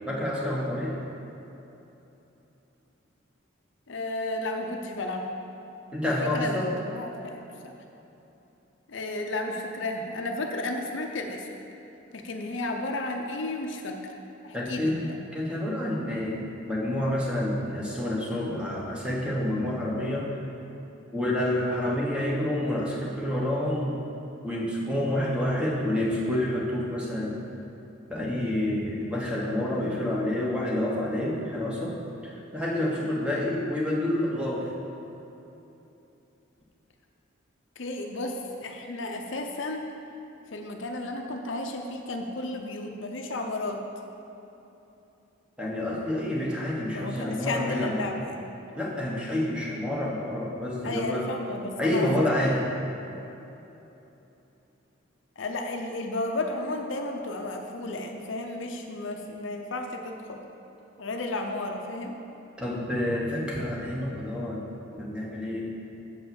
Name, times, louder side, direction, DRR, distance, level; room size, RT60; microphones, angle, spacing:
voice 1, 0.1-1.0 5.9-6.7 14.5-15.1 15.3-20.4 21.1-24.0 24.4-27.4 28.1-34.7 45.6-48.1 48.7-51.2 51.8-52.7 62.6-65.6, left 1 dB, 5° right, -4 dB, 1.2 m, -28 dB
voice 2, 3.9-5.3 6.2-7.8 8.9-11.5 12.1-14.0 14.4-15.1 37.8-39.9 40.5-43.8 46.9-48.4 50.8-52.1 55.4-60.4 61.0-62.2, left 2 dB, 60° left, 3 dB, 0.6 m, -33 dB
7.7 x 5.5 x 7.0 m, 3.0 s
head